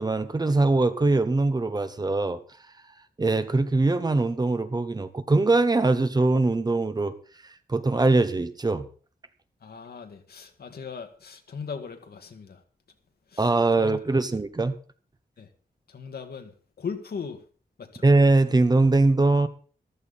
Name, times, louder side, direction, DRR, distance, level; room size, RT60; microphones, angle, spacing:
voice 1, 0.0-2.4 3.2-7.1 7.7-8.9 13.4-14.8 18.0-19.5, right 2 dB, 25° right, 1.0 m, -22 dB
voice 2, 9.6-12.6 13.3-14.0 15.4-15.5 15.9-17.4 17.8-18.0, left 6 dB, 75° left, 1.9 m, -38 dB
14.5 x 13.5 x 4.1 m
wide cardioid pair, 175°, 16 cm